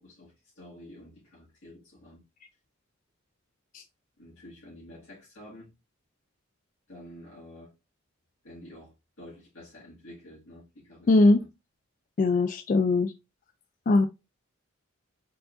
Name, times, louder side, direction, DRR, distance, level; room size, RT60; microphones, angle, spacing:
voice 1, 0.0-2.2 4.2-5.7 6.9-7.7 8.4-11.5, left 1 dB, 70° left, 1.9 m, -49 dB
voice 2, 11.1-11.4 12.2-13.1 13.9-14.1, left 2 dB, 40° left, 0.3 m, -20 dB
4.7 x 3.8 x 2.4 m
head